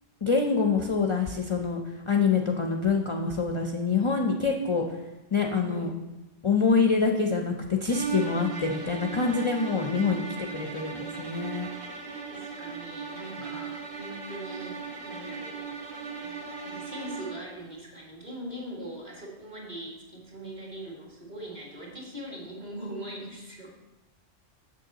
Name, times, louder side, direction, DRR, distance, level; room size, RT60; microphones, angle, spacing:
voice 1, 0.2-1.8 2.1-4.8 5.3-5.9 6.4-10.2 10.5-11.7, left 5 dB, 40° left, 3 dB, 0.4 m, -25 dB
sound 1, 7.8-17.5, right 5 dB, 75° right, 1.3 m, -37 dB
voice 2, 9.9-10.3 12.3-15.7 16.2-23.8, right 1 dB, 40° right, -3 dB, 1.9 m, -41 dB
7.0 x 6.6 x 3.9 m, 1.0 s
omnidirectional pair, 1.1 m